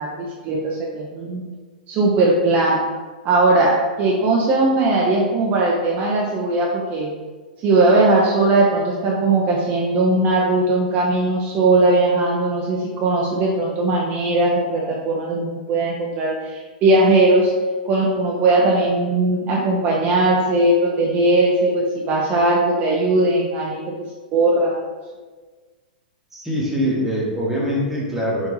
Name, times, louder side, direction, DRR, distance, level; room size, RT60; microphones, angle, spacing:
voice 1, 0.0-1.4 1.9-2.8 3.2-7.1 7.6-17.5 17.8-24.8, right 2 dB, 35° right, -3 dB, 0.4 m, -19 dB
voice 2, 26.3-28.5, equal, 5° right, -5 dB, 0.9 m, -23 dB
3.5 x 2.5 x 3.0 m, 1.4 s
hypercardioid pair, 125°, 5 cm